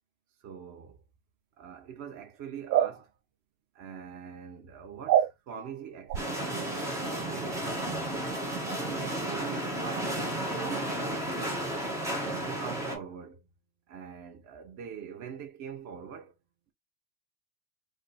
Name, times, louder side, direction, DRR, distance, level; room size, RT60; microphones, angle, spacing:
voice 1, 0.4-1.0 1.6-3.1 3.7-8.3 8.9-10.1 10.6-11.7 12.2-13.5 13.9-16.3, right 8 dB, 35° right, 0.9 m, -43 dB
sound 1, 2.7-2.9 5.1-5.3 6.1-6.2, right 11 dB, 80° right, 0.6 m, -23 dB
sound 2, 6.1-13.0, right 1 dB, 5° right, 0.3 m, -33 dB
2.5 x 2.3 x 4.0 m
supercardioid pair, 125°, 50 cm